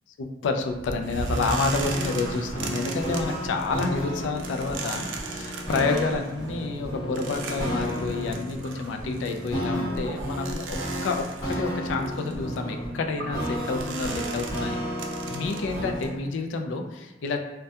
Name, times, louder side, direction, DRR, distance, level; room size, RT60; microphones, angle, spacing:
voice 1, 0.2-10.8 11.0-14.8 15.3-17.4, left 4 dB, 85° left, 5 dB, 0.3 m, -29 dB
sound 1, 0.6-16.1, right 4 dB, 90° right, 0.3 m, -38 dB
sound 2, 0.9-16.2, equal, 20° left, 0.7 m, -33 dB
2.2 x 2.2 x 2.7 m, 1.1 s
head